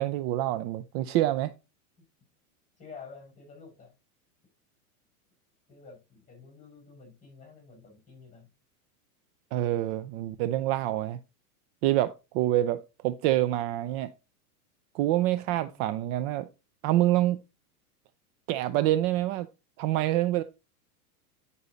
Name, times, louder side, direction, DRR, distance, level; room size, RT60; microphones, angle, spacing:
voice 1, 0.0-1.5 9.5-11.2 11.8-14.1 14.9-16.5 16.8-17.4 18.5-19.5 19.8-20.4, right 14 dB, 45° right, 0.6 m, -26 dB
voice 2, 2.8-4.0 5.7-8.5 15.4-16.0, left 5 dB, 15° left, 5.8 m, -50 dB
9.7 x 5.5 x 3.9 m
hypercardioid pair, 125°, 45 cm